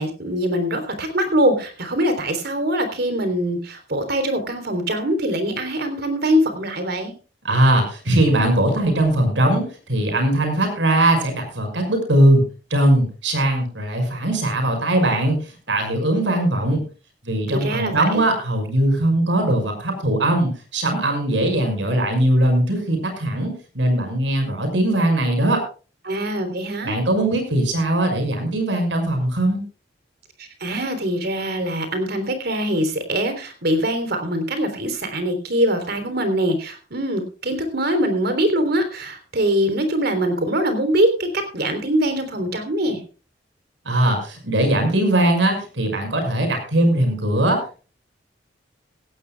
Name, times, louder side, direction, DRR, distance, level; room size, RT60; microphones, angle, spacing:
voice 1, 0.0-7.1 17.5-18.2 26.0-26.9 30.6-43.0, equal, 60° right, 8 dB, 3.6 m, -23 dB
voice 2, 7.4-12.4 12.7-16.8 17.2-25.6 26.8-29.6 43.9-47.8, right 1 dB, 90° right, 5 dB, 5.8 m, -20 dB
17.0 x 16.0 x 2.3 m, 0.36 s
head